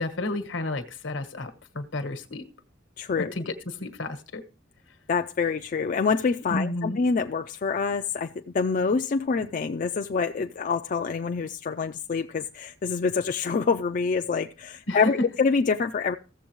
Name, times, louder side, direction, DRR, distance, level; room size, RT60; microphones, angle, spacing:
voice 1, 0.0-2.5 3.2-4.4 6.5-7.0 14.9-15.0, left 2 dB, 80° left, 1.2 m, -32 dB
voice 2, 3.0-3.3 5.1-16.2, left 5 dB, 45° left, 0.4 m, -26 dB
15.5 x 7.2 x 3.0 m
head